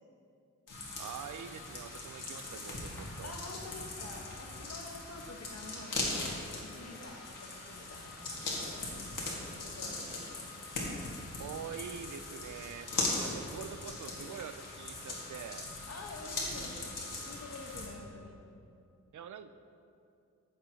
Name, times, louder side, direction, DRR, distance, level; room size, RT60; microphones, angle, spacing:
sound 1, 0.7-17.9, left 2 dB, 90° left, 1.8 m, -40 dB
voice 1, 1.0-3.3 11.4-12.9 13.2-15.7 19.1-19.5, right 8 dB, 70° right, 11 dB, 0.5 m, -45 dB
voice 2, 3.2-8.9 9.5-10.4 15.9-16.8 17.3-18.4, left 3 dB, 55° left, 2 dB, 1.2 m, -48 dB
15.0 x 6.7 x 2.8 m, 2.6 s
wide cardioid pair, 95°, 31 cm